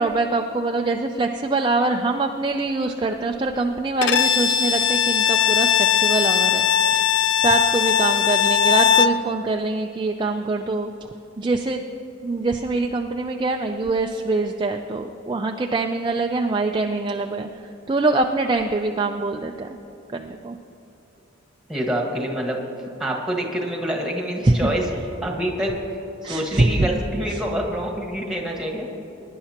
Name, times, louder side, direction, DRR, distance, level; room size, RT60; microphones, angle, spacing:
voice 1, 0.0-6.7 6.9-7.0 7.4-10.9 11.4-11.8 12.2-19.7 20.1-20.6 24.4-24.7 25.0-25.1 26.2-26.9 27.2-27.5, right 3 dB, 25° right, 3 dB, 0.4 m, -24 dB
Bowed string instrument, 4.0-9.2, left 8 dB, 60° left, 0.4 m, -19 dB
voice 2, 21.7-22.6 23.0-24.8 25.2-25.7 26.2-28.9, equal, 5° right, 0 dB, 1.6 m, -26 dB
21.5 x 11.0 x 2.9 m, 3.0 s
head